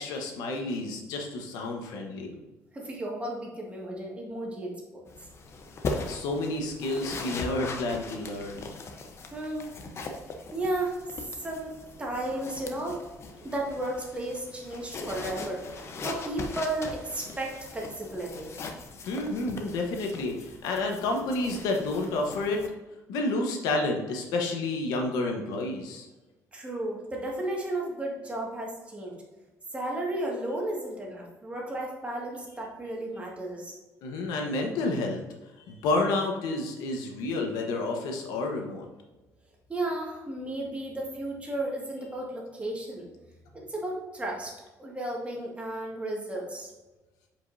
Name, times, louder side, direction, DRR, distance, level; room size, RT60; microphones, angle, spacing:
voice 1, 0.0-2.4 6.0-8.6 19.1-22.6 23.1-26.1 34.0-35.2 35.6-38.9, left 2 dB, 85° left, 2 dB, 1.2 m, -30 dB
voice 2, 2.7-5.1 9.3-9.7 10.5-11.0 11.4-11.7 12.0-13.0 13.4-18.6 26.5-29.2 29.7-33.7 39.7-43.1 43.5-44.5 44.8-46.7, right 1 dB, 20° right, -2 dB, 1.9 m, -34 dB
sound 1, 5.1-22.7, left 3 dB, 45° left, 0.9 m, -40 dB
7.6 x 5.3 x 2.7 m, 1.1 s
cardioid pair, 105°, 6 cm